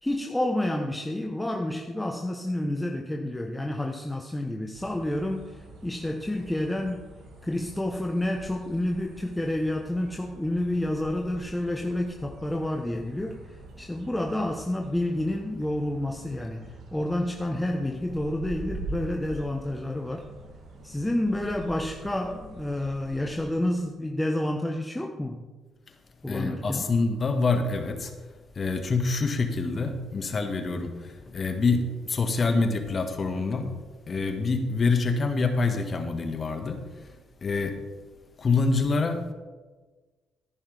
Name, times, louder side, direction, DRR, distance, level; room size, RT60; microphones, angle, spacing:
voice 1, 0.0-7.0 7.4-13.3 13.8-20.3 20.8-25.5 26.2-26.9, left 1 dB, 10° left, 3 dB, 1.1 m, -29 dB
sound 1, 4.7-23.5, right 2 dB, 60° right, 3.2 m, -44 dB
voice 2, 26.3-28.1 28.6-33.7 34.1-37.1 37.4-37.7 38.4-39.3, left 3 dB, 40° left, 6 dB, 1.8 m, -26 dB
14.0 x 11.0 x 3.5 m, 1.3 s
hypercardioid pair, 45°, 0 cm